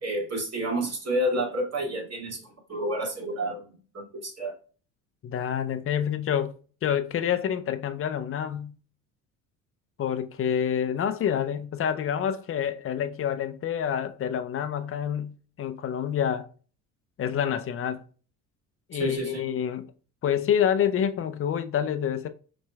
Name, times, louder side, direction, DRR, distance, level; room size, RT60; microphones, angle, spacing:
voice 1, 0.0-4.5 18.9-19.5, right 1 dB, 35° right, 2.2 m, -30 dB
voice 2, 5.2-6.6 6.8-8.7 10.0-16.5 17.2-18.0 18.9-19.9 20.2-22.3, left 9 dB, 35° left, 0.5 m, -27 dB
5.5 x 3.2 x 2.2 m
hypercardioid pair, 60°, 42 cm